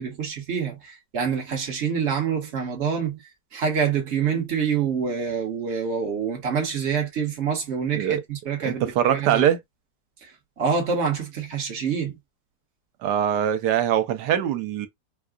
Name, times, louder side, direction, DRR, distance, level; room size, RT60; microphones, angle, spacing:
voice 1, 0.0-3.2 3.5-9.4 10.6-12.2, right 6 dB, 45° right, 1.4 m, -26 dB
voice 2, 8.6-9.6 13.0-14.9, right 10 dB, 80° right, 1.2 m, -22 dB
4.6 x 2.3 x 2.3 m
omnidirectional pair, 1.8 m